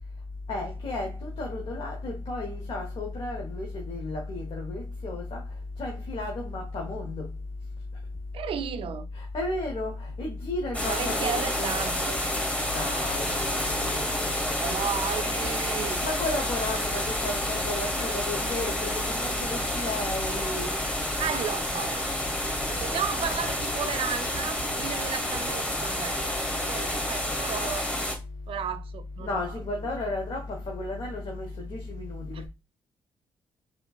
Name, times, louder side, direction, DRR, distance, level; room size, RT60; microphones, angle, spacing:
voice 1, 0.5-5.4 5.8-7.3 9.1-11.7 12.7-14.5 16.0-20.8 29.2-32.5, left 2 dB, 55° left, 1.1 m, -33 dB
voice 2, 8.3-9.1 10.9-12.2 14.5-16.1 21.2-22.1 22.7-27.9 28.5-29.5 32.3-32.4, right 8 dB, 60° right, 0.4 m, -34 dB
sound 1, 10.7-28.2, left 1 dB, 15° left, 1.9 m, -29 dB
4.4 x 3.0 x 2.4 m
supercardioid pair, 50°, 10 cm